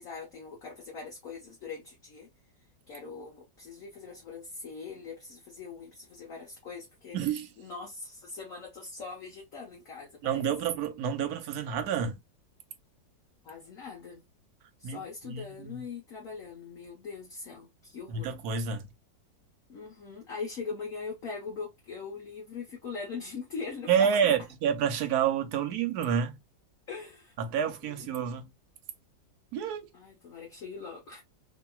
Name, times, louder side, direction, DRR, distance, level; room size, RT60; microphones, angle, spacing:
voice 1, 0.0-2.3 2.9-7.2 7.6-10.4 13.4-14.2 14.8-18.4 19.7-24.4 26.9-28.1 29.9-31.2, left 5 dB, 55° left, 1.2 m, -41 dB
voice 2, 7.1-7.5 10.2-12.2 14.8-15.8 18.1-18.9 23.9-26.4 27.4-28.5 29.5-29.9, right 7 dB, 70° right, 1.0 m, -29 dB
2.9 x 2.9 x 2.3 m
omnidirectional pair, 2.0 m